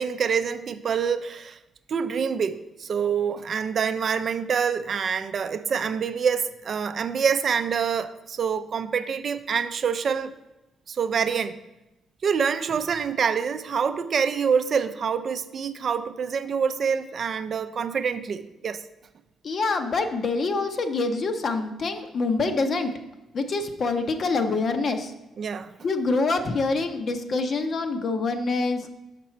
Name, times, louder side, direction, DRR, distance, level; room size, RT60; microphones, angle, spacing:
voice 1, 0.0-1.6 1.9-10.3 10.9-11.6 12.2-18.8 25.4-25.7, right 6 dB, 50° right, 0.4 m, -26 dB
voice 2, 19.4-22.9 23.3-25.1 25.8-28.8, left 3 dB, 50° left, 0.6 m, -25 dB
5.9 x 5.4 x 4.4 m
cardioid pair, 90°, 0 cm